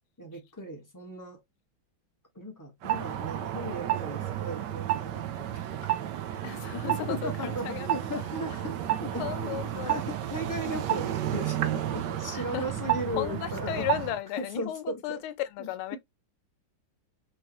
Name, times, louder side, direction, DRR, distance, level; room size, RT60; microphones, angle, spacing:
voice 1, 0.2-1.4 2.3-5.5 5.7-6.1 6.8-9.2 9.9-13.8 14.4-15.2, equal, 20° left, 0.5 m, -37 dB
sound 1, 2.8-14.2, right 12 dB, 70° right, 1.1 m, -31 dB
voice 2, 6.4-7.9 9.2-10.0 12.3-12.7 13.1-16.0, left 13 dB, 90° left, 1.5 m, -35 dB
4.5 x 3.2 x 2.9 m
omnidirectional pair, 2.3 m